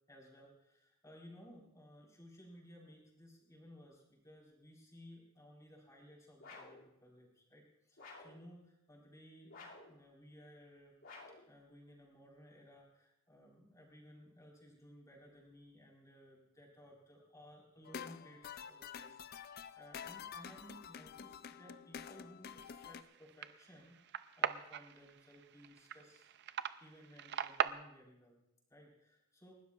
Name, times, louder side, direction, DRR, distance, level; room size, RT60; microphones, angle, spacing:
voice 1, 0.1-10.9 11.5-26.3 26.8-28.4 28.7-29.6, equal, 15° left, -3 dB, 4.4 m, -59 dB
sound 1, 6.4-6.9 8.0-8.4 9.5-10.0 11.0-11.5, left 3 dB, 65° left, 2.6 m, -53 dB
sound 2, 17.9-23.0, left 7 dB, 45° left, 0.4 m, -49 dB
sound 3, 22.6-27.7, right 8 dB, 50° right, 0.4 m, -41 dB
29.5 x 12.5 x 2.4 m, 0.85 s
head